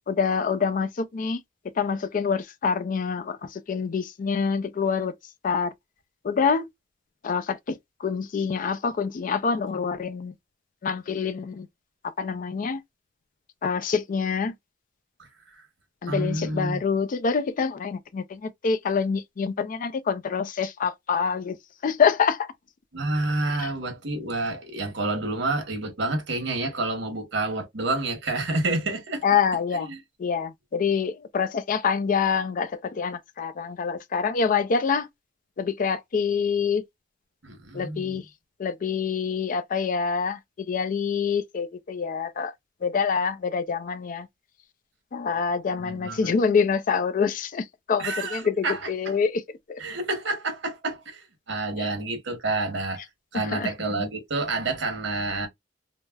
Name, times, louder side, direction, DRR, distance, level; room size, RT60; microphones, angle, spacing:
voice 1, 0.1-1.4 1.8-5.1 5.4-5.7 6.2-6.7 7.2-10.3 10.8-11.7 12.2-12.8 13.6-14.5 16.0-21.6 21.8-22.5 29.2-29.9 30.2-35.1 35.6-36.8 37.7-38.2 38.6-40.4 40.7-42.5 42.8-44.3 45.1-49.4 49.7-49.8 51.8-51.9 53.3-53.7, left 6 dB, 45° left, 0.4 m, -26 dB
voice 2, 16.1-16.8 22.9-29.2 29.7-30.0 37.4-38.2 45.8-46.3 48.0-49.2 49.8-53.0 53.3-55.5, right 2 dB, 70° right, 1.0 m, -29 dB
3.3 x 2.0 x 2.2 m
head